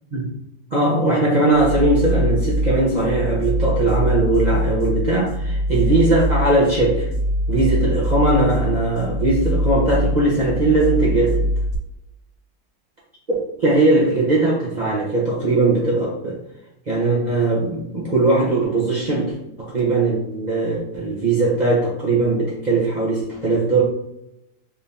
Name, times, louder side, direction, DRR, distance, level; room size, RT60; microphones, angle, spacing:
voice 1, 0.7-7.1 7.5-11.4 13.3-16.4 16.9-23.8, right 2 dB, 50° right, -6 dB, 0.5 m, -19 dB
sound 1, 1.5-11.7, equal, 90° left, 1.4 m, -23 dB
4.3 x 2.7 x 3.4 m, 0.82 s
omnidirectional pair, 2.0 m